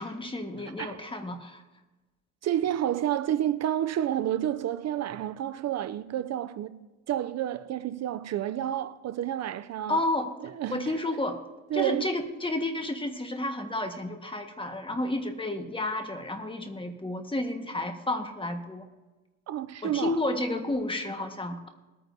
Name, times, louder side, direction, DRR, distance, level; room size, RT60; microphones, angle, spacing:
voice 1, 0.0-1.6 9.9-10.3 10.7-11.4 11.7-18.9 19.8-21.7, left 2 dB, 15° left, 1.5 m, -31 dB
voice 2, 2.4-6.8 7.1-10.0 10.4-10.9 11.7-12.1 19.5-20.2, right 11 dB, 60° right, 0.5 m, -30 dB
20.0 x 9.3 x 2.7 m
cardioid pair, 90°, 30 cm